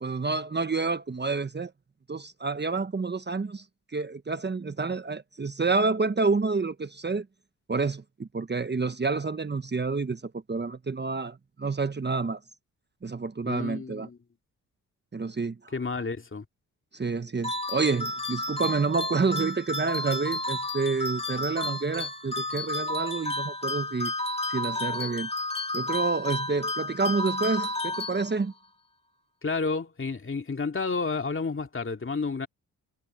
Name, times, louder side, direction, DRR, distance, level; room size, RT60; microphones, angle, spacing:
voice 1, 0.0-1.7 2.1-3.6 3.9-7.3 7.7-12.4 13.0-14.1 15.1-15.6 16.9-24.1 24.5-25.3 25.7-28.5, right 4 dB, 25° right, 1.2 m, -28 dB
voice 2, 13.5-14.2 15.7-16.4 29.4-32.5, left 4 dB, 30° left, 2.4 m, -30 dB
sound 1, 17.4-28.7, left 2 dB, 15° left, 4.0 m, -32 dB
supercardioid pair, 50°, 39 cm